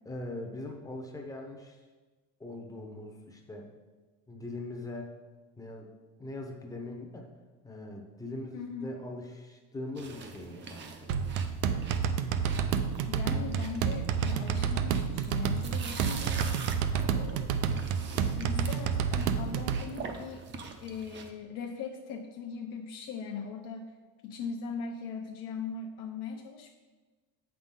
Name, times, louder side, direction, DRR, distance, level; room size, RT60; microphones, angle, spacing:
voice 1, 0.0-1.8 2.4-3.7 4.3-5.1 5.6-5.9 6.2-7.3 7.6-11.1 17.5-17.6, left 2 dB, 10° left, 2 dB, 0.8 m, -41 dB
voice 2, 8.5-8.9 13.1-16.4 17.1-17.6 18.3-20.5 20.8-23.9 24.2-26.7, left 5 dB, 60° left, 1 dB, 0.8 m, -39 dB
sound 1, 10.0-21.3, right 5 dB, 30° right, 0.6 m, -44 dB
sound 2, 11.1-19.8, right 7 dB, 80° right, 0.6 m, -30 dB
7.3 x 5.9 x 3.7 m, 1.3 s
cardioid pair, 145°, 37 cm